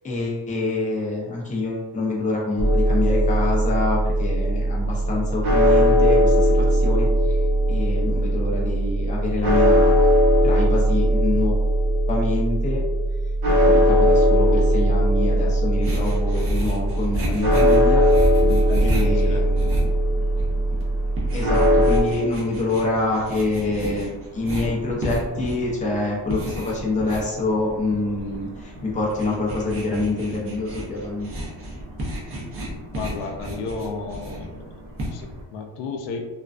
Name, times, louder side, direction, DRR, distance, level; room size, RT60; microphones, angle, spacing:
voice 1, 0.0-7.3 7.7-10.1 10.4-11.5 12.1-12.8 13.5-18.0 18.8-19.9 21.3-31.3, left 2 dB, 20° left, -3 dB, 0.5 m, -26 dB
sound 1, 2.6-22.0, equal, 65° right, 1.0 m, -19 dB
sound 2, 15.8-35.4, equal, 35° right, 0.6 m, -33 dB
voice 2, 18.4-19.5 32.9-36.3, left 4 dB, 90° left, 4 dB, 0.5 m, -33 dB
2.5 x 2.2 x 2.3 m, 1.2 s
cardioid pair, 140°, 41 cm